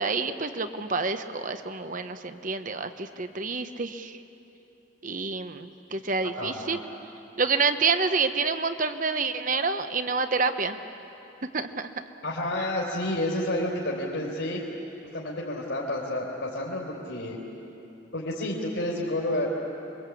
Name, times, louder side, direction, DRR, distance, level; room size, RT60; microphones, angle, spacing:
voice 1, 0.0-4.2 5.0-6.8 7.4-10.8 11.5-11.9 12.6-12.7, right 4 dB, 40° right, 9 dB, 1.0 m, -28 dB
voice 2, 6.4-6.8 12.2-14.6 15.1-17.4 18.1-19.5, left 1 dB, 70° left, -3 dB, 3.9 m, -30 dB
28.5 x 23.0 x 8.5 m, 3.0 s
head